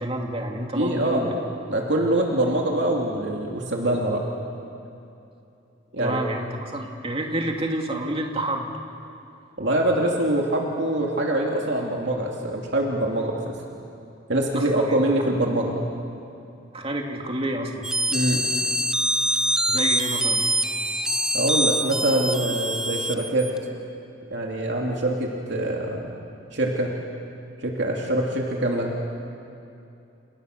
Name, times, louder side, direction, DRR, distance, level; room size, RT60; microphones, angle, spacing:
voice 1, 0.0-1.4 6.0-8.7 14.5-14.9 16.7-17.9 19.7-20.4, right 1 dB, 30° right, 1 dB, 2.5 m, -29 dB
voice 2, 0.7-1.2 1.7-4.2 5.9-6.2 9.6-13.4 14.3-15.8 18.1-18.5 21.3-23.5 24.3-26.1 26.5-26.9 27.6-28.9, right 1 dB, 60° right, -1 dB, 2.9 m, -24 dB
sound 1, 17.8-23.6, right 1 dB, 5° right, 0.6 m, -24 dB
29.0 x 28.5 x 6.7 m, 2.7 s
head